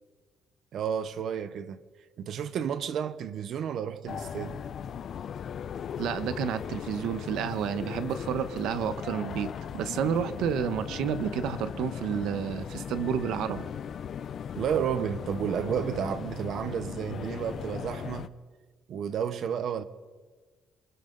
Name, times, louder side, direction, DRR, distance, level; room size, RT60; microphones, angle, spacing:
voice 1, 0.7-1.8 2.2-4.6 14.5-18.3 18.9-19.8, right 8 dB, 55° right, 1.0 m, -31 dB
sound 1, 4.1-18.3, left 8 dB, 45° left, 0.6 m, -38 dB
voice 2, 6.0-13.7, right 8 dB, 80° right, 1.3 m, -30 dB
27.5 x 24.0 x 4.1 m
cardioid pair, 160°, 0 cm